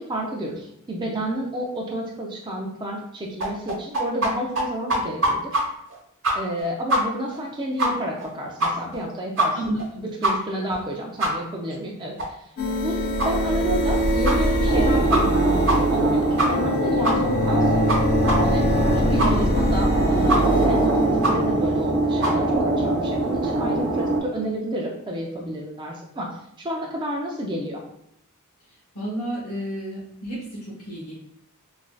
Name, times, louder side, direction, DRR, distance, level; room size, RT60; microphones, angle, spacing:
voice 1, 0.0-5.5 6.3-9.6 10.2-12.5 12.8-18.0 18.4-26.3 26.6-27.8, right 1 dB, 20° right, -1 dB, 0.4 m, -30 dB
sound 1, 3.4-4.3 4.6-4.7 4.9-5.6 5.9-6.0 6.2-6.6 6.9-7.0 7.3-7.4 7.8-7.9 8.2-8.3 8.6-9.0 9.4-9.5 9.8-9.9 10.2-10.3 10.7-10.8 11.2-11.3 11.7-11.8 12.2-12.3 12.7-12.8 13.2-13.3 13.7-13.8 14.2-14.4 14.7-14.8 15.1-15.4 15.7-15.8 16.0-16.1 16.4-16.7 17.0-17.2 17.5-17.6 17.9-18.0 18.3-18.4 18.7-18.8 19.2-19.3 19.7-19.8 20.3-20.4 20.7-20.8 21.2-21.3 21.7-21.8 22.2-22.3, right 2 dB, 60° right, 1.0 m, -22 dB
voice 2, 9.5-10.0 18.9-19.5 28.9-31.1, right 1 dB, 85° left, -7 dB, 0.9 m, -31 dB
sound 2, 12.6-24.2, equal, 45° left, 0.4 m, -24 dB
sound 3, 14.7-24.2, right 2 dB, 90° right, 1.0 m, -23 dB
3.1 x 2.6 x 2.3 m, 0.76 s
head